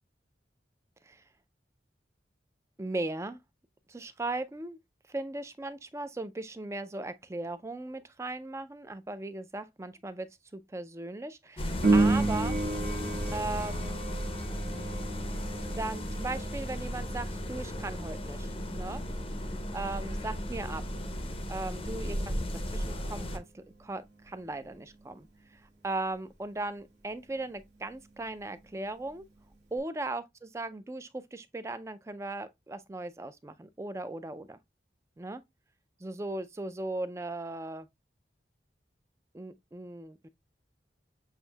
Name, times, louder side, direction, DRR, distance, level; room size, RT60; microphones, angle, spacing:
voice 1, 2.8-3.4 3.9-4.8 5.1-12.6 13.3-14.0 15.8-19.0 19.7-20.8 21.5-22.3 22.7-25.3 25.8-29.3 29.7-34.6 35.2-35.4 36.0-37.9 39.3-40.3, right 2 dB, 15° right, 0.4 m, -38 dB
sound 1, 11.6-23.4, equal, 30° left, 0.6 m, -35 dB
Piano, 11.8-22.2 29.8-29.9, right 2 dB, 65° right, 1.1 m, -33 dB
7.2 x 2.6 x 2.2 m
head